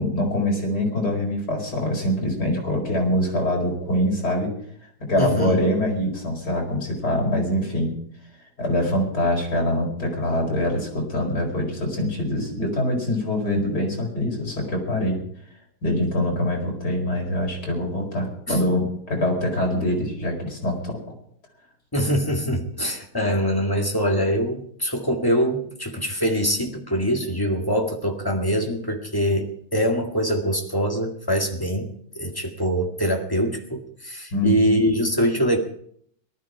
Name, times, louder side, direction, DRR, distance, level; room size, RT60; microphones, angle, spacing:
voice 1, 0.0-4.5 5.1-7.9 8.6-15.2 15.8-21.0 34.3-34.8, left 1 dB, 70° left, 0 dB, 5.3 m, -24 dB
voice 2, 5.2-5.7 18.5-18.6 21.9-35.6, equal, 15° left, 2 dB, 2.0 m, -24 dB
18.5 x 13.0 x 4.8 m, 0.65 s
omnidirectional pair, 1.8 m